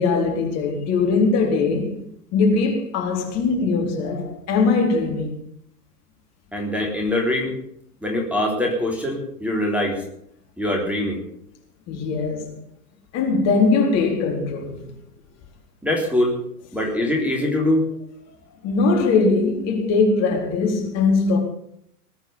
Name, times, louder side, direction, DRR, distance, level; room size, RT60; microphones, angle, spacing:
voice 1, 0.0-2.0 2.3-5.3 11.9-12.6 13.1-14.9 18.6-21.4, left 4 dB, 35° left, 4.1 m, -21 dB
voice 2, 6.5-7.5 8.0-10.0 10.6-11.2 15.8-16.4 16.7-17.8, left 1 dB, 5° right, 3.7 m, -23 dB
20.0 x 8.9 x 7.1 m
figure-of-eight pair, 105°, 47 cm